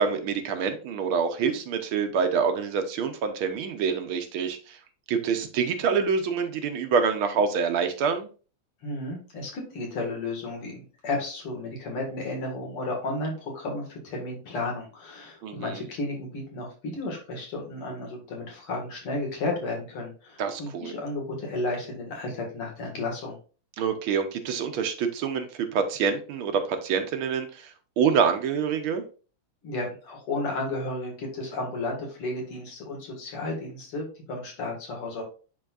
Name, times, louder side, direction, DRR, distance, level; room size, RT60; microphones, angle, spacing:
voice 1, 0.0-4.8 5.1-8.3 15.4-15.8 20.4-20.9 23.8-27.7 28.0-29.0, right 6 dB, 75° right, 7 dB, 1.6 m, -26 dB
voice 2, 8.8-23.4 29.6-35.2, left 2 dB, 85° left, 0 dB, 2.7 m, -33 dB
10.0 x 3.8 x 2.5 m, 0.36 s
omnidirectional pair, 2.4 m